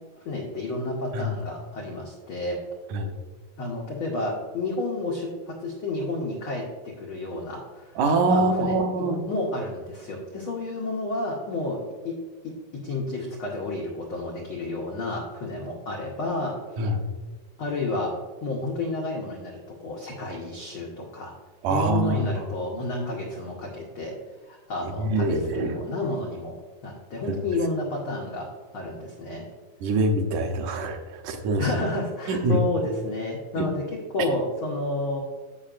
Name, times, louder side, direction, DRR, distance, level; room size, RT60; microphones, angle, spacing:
voice 1, 0.2-2.6 3.6-8.0 8.3-12.2 12.4-16.6 17.6-21.3 21.7-26.6 26.8-29.5 31.6-35.2, left 2 dB, 75° left, -1 dB, 1.2 m, -31 dB
voice 2, 8.0-9.2 16.8-17.0 21.6-22.4 25.0-25.8 27.3-27.4 29.8-31.7 32.3-32.6 33.6-33.7, right 2 dB, 70° right, 4 dB, 2.1 m, -24 dB
14.0 x 5.5 x 2.5 m, 1.3 s
omnidirectional pair, 3.8 m